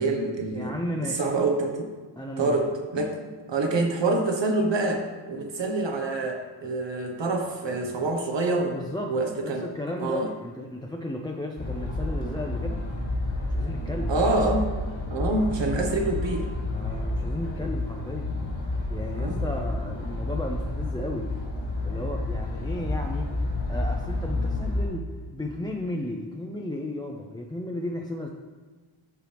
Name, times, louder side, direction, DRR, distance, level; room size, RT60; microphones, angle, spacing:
voice 1, 0.0-0.7 1.2-1.9 2.4-3.2 3.5-8.8 9.1-9.6 10.0-10.3 14.1-14.7 15.1-16.5 19.1-19.4, right 2 dB, 60° right, 2 dB, 1.3 m, -26 dB
voice 2, 0.5-1.3 2.2-2.6 8.6-9.2 9.4-12.9 13.5-14.1 15.5-16.3 16.7-18.3 18.9-21.3 21.8-23.3 23.7-28.3, left 1 dB, 10° left, 0 dB, 0.5 m, -34 dB
sound 1, 11.6-24.8, left 2 dB, 85° left, 2.3 m, -30 dB
13.0 x 4.5 x 3.4 m, 1.4 s
wide cardioid pair, 95°, 49 cm